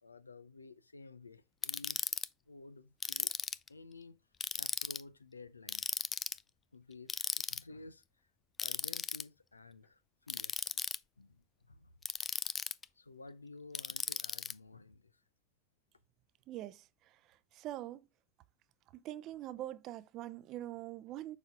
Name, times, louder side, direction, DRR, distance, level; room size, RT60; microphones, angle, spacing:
voice 1, 0.0-2.1 2.5-3.3 3.7-4.2 4.5-5.9 6.7-8.0 8.6-10.9 11.2-11.9 12.9-15.2, left 3 dB, 90° left, 0.5 m, -53 dB
Ratchet pawl, 1.6-2.3 3.0-3.7 4.4-5.0 5.7-6.4 7.1-7.6 8.6-9.2 10.3-11.0 12.0-12.8 13.7-14.5, left 6 dB, 25° left, 0.3 m, -36 dB
voice 2, 16.5-16.8 17.5-18.0 19.0-21.4, right 14 dB, 45° right, 0.5 m, -43 dB
6.9 x 4.4 x 3.4 m
figure-of-eight pair, 85°, 0 cm